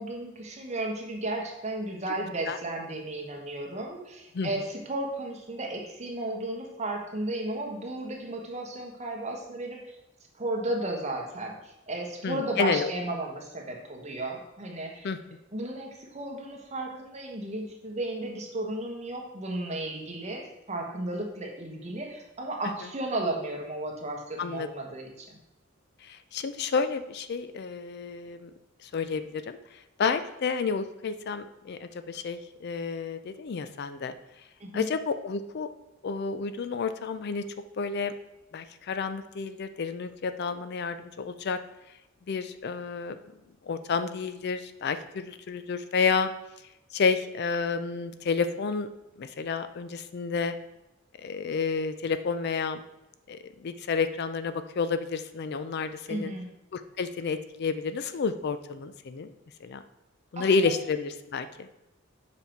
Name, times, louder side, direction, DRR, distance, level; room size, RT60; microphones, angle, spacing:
voice 1, 0.0-9.9 10.4-15.1 15.5-25.4 34.6-34.9 56.1-56.5 60.4-60.7, right 1 dB, 35° right, 1 dB, 1.4 m, -34 dB
voice 2, 12.2-12.9 15.0-15.2 24.4-24.7 26.0-28.5 28.8-29.6 30.0-34.1 34.7-35.7 36.0-37.5 37.8-38.1 38.5-41.6 42.3-43.2 43.6-46.3 46.9-48.9 49.2-50.6 51.2-52.8 53.3-56.3 56.7-59.3 59.6-59.8 60.3-61.7, left 5 dB, 55° left, 11 dB, 0.4 m, -30 dB
7.1 x 5.3 x 4.5 m, 0.91 s
head